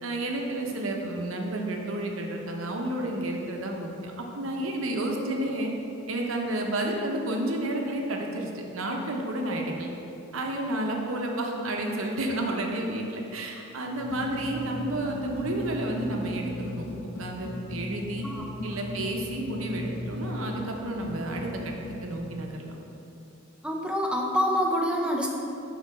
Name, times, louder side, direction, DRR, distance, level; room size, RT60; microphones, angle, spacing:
voice 1, 0.0-5.7 6.1-9.9 10.3-16.9 17.2-18.3 18.6-21.7 22.0-22.8, right 1 dB, 80° right, 1 dB, 0.8 m, -31 dB
sound 1, 13.9-22.1, left 1 dB, 75° left, 1.2 m, -37 dB
voice 2, 18.2-18.8 23.6-25.3, equal, 5° right, -1 dB, 0.6 m, -27 dB
6.5 x 4.0 x 5.2 m, 2.8 s
head